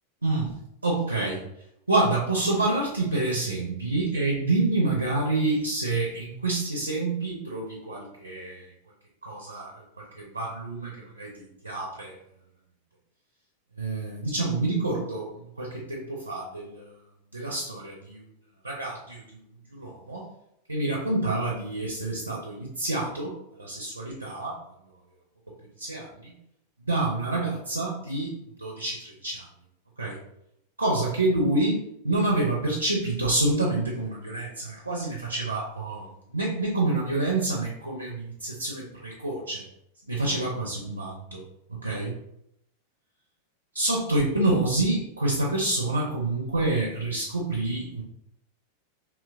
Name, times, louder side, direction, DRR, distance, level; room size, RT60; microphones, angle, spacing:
voice 1, 0.2-0.5 0.8-1.4 1.9-8.7 9.2-12.2 13.8-16.9 17.3-18.2 18.6-19.4 19.7-20.2 20.7-24.6 25.8-26.3 26.8-29.5 30.0-30.2 30.8-39.6 40.1-41.4 41.7-42.1 43.7-48.0, right 2 dB, 80° right, -2 dB, 0.4 m, -28 dB
2.9 x 2.2 x 2.3 m, 0.79 s
figure-of-eight pair, 90°, 0 cm